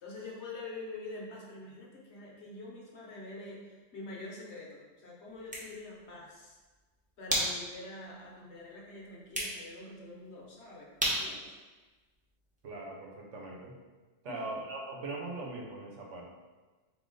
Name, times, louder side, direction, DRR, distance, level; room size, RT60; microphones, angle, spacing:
voice 1, 0.0-6.6 7.2-11.5 14.3-14.4, left 2 dB, 70° left, -3 dB, 1.1 m, -45 dB
sound 1, 5.3-12.7, equal, 10° right, 0.7 m, -38 dB
voice 2, 12.6-13.7 14.2-16.2, right 2 dB, 85° right, -1 dB, 1.2 m, -40 dB
3.8 x 2.9 x 3.8 m, 1.3 s
omnidirectional pair, 1.2 m